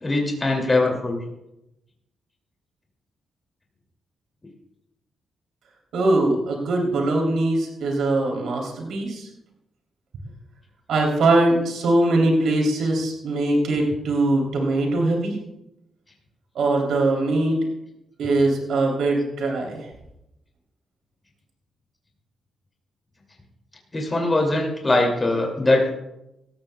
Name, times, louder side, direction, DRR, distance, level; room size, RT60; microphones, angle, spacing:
voice 1, 0.0-1.2 23.9-26.0, left 2 dB, 25° left, 0 dB, 2.6 m, -21 dB
voice 2, 5.9-9.3 10.9-15.4 16.5-17.6 18.2-19.9, right 2 dB, 80° right, 0 dB, 3.2 m, -21 dB
18.0 x 14.0 x 2.3 m, 0.88 s
cardioid pair, 80°, 0 cm